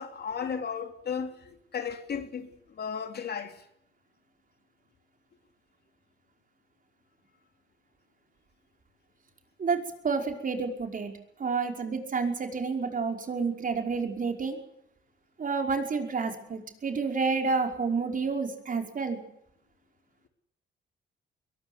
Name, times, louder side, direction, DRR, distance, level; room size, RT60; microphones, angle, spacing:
voice 1, 0.0-3.7, left 6 dB, 55° left, 3.3 m, -35 dB
voice 2, 9.6-11.1 11.4-14.6 15.4-19.2, right 4 dB, 45° right, 5.4 m, -29 dB
22.5 x 19.0 x 8.1 m
cardioid pair, 90°, 20 cm